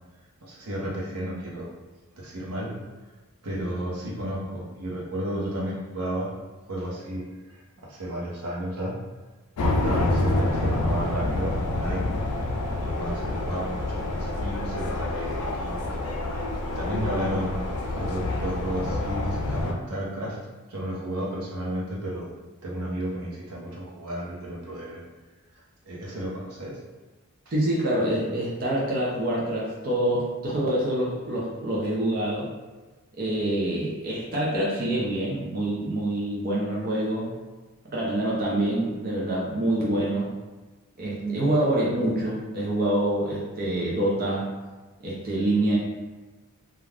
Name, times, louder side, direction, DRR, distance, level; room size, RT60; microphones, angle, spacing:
voice 1, 0.4-1.7 2.2-2.8 3.4-6.3 6.7-9.0 9.6-12.1 12.8-15.9 16.6-20.4 20.7-22.3 22.6-25.0 25.9-26.8, right 1 dB, 80° right, -4 dB, 0.8 m, -33 dB
sound 1, 9.6-19.7, left 2 dB, 75° left, 0.4 m, -27 dB
voice 2, 27.5-32.5 33.2-37.3 37.9-40.3 41.0-44.5 45.0-45.8, right 1 dB, 40° right, -5 dB, 0.5 m, -26 dB
2.4 x 2.2 x 3.3 m, 1.2 s
head